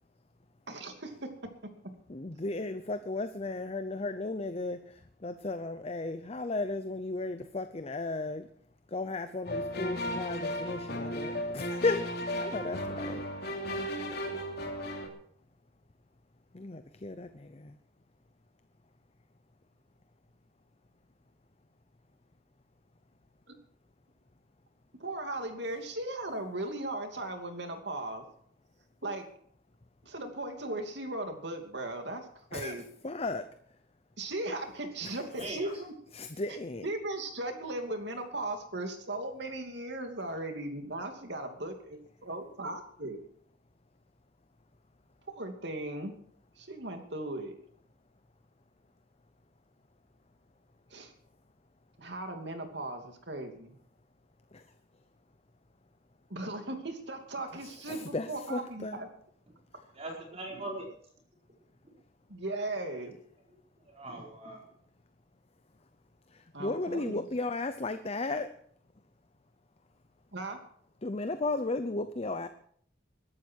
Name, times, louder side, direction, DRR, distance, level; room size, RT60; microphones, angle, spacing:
voice 1, 0.7-1.3 25.0-28.2 29.0-29.2 30.0-32.8 34.2-35.9 36.5-36.6 36.8-43.2 45.4-46.1 46.6-47.5 50.9-51.1 52.0-53.7 56.3-59.1 62.3-63.2 66.5-67.2 70.3-70.6, right 2 dB, 65° right, 5 dB, 2.7 m, -37 dB
voice 2, 2.1-4.8 5.2-8.4 8.9-12.0 12.4-13.3 16.5-17.7 32.5-32.7 33.0-33.4 36.1-36.9 57.9-59.0 66.6-68.5 71.0-72.5, left 2 dB, 35° left, 10 dB, 0.7 m, -34 dB
sound 1, 9.5-15.1, equal, 60° left, 3.2 m, -35 dB
voice 3, 35.3-35.7 59.9-60.9 63.8-64.7, right 1 dB, 35° right, -1 dB, 4.8 m, -40 dB
21.5 x 12.0 x 4.7 m, 0.63 s
head